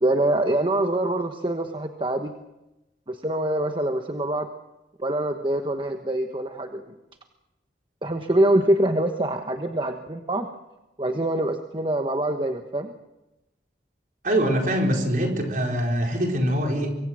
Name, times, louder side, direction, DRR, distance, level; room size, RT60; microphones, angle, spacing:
voice 1, 0.0-2.3 3.1-4.5 5.0-6.8 8.0-10.5 11.0-12.9, right 1 dB, 30° right, 5 dB, 1.2 m, -24 dB
voice 2, 14.2-16.9, equal, 50° right, 1 dB, 4.7 m, -23 dB
24.5 x 24.0 x 6.3 m, 0.98 s
head